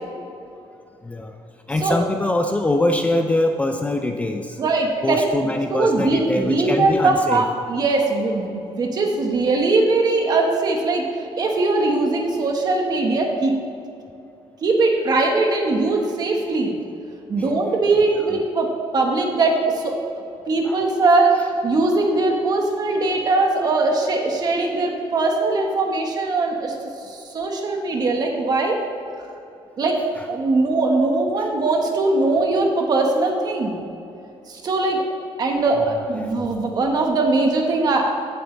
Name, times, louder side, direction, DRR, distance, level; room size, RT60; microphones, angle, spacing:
voice 1, 1.0-1.3 1.7-4.6 5.0-7.4 18.1-18.4 20.6-20.8 36.1-36.4, left 1 dB, 15° left, 5 dB, 0.4 m, -23 dB
voice 2, 4.6-5.2 5.7-13.6 14.6-16.7 17.3-19.9 20.5-26.7 27.1-28.8 29.8-30.0 30.3-33.7 34.5-35.0 35.4-38.1, right 3 dB, 40° right, 2 dB, 1.5 m, -20 dB
16.0 x 7.7 x 3.4 m, 2.7 s
cardioid pair, 160°, 10 cm